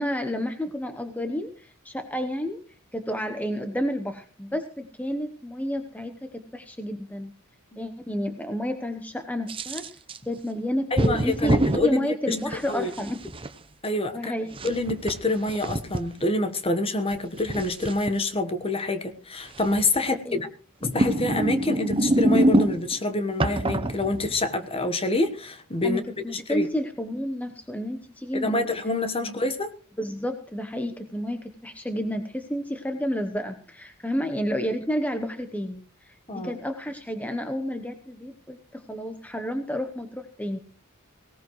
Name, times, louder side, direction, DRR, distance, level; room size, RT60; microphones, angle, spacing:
voice 1, 0.0-2.6 2.9-7.3 7.8-9.8 10.3-13.2 14.1-14.5 20.2-20.4 25.8-28.7 29.2-29.4 30.0-40.6, equal, 5° left, 6 dB, 0.9 m, -30 dB
sound 1, 9.5-10.2 11.0-11.8 12.5-13.5 14.5-16.0 17.1-18.1 19.6-20.0 20.8-23.0 23.4-24.5, right 1 dB, 25° right, 0.8 m, -25 dB
voice 2, 10.9-12.4 12.7-12.9 13.8-14.3 14.6-20.5 20.8-26.0 26.3-26.7 28.3-29.7 36.3-36.5, left 2 dB, 25° left, 9 dB, 1.2 m, -27 dB
19.0 x 18.0 x 3.1 m, 0.38 s
head